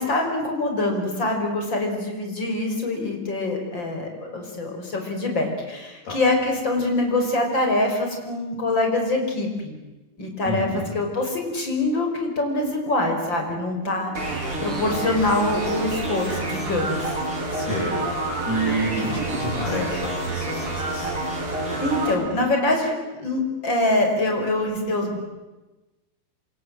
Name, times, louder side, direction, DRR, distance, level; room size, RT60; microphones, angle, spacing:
voice 1, 0.0-9.7 10.2-17.1 18.9-19.0 21.8-25.2, left 2 dB, 30° left, 3 dB, 5.6 m, -24 dB
voice 2, 10.4-10.9 17.5-18.0 18.4-21.1, right 1 dB, 70° left, -3 dB, 8.5 m, -28 dB
sound 1, 14.1-22.1, right 2 dB, 35° right, 5.1 m, -28 dB
27.5 x 26.0 x 7.9 m, 1.1 s
omnidirectional pair, 4.6 m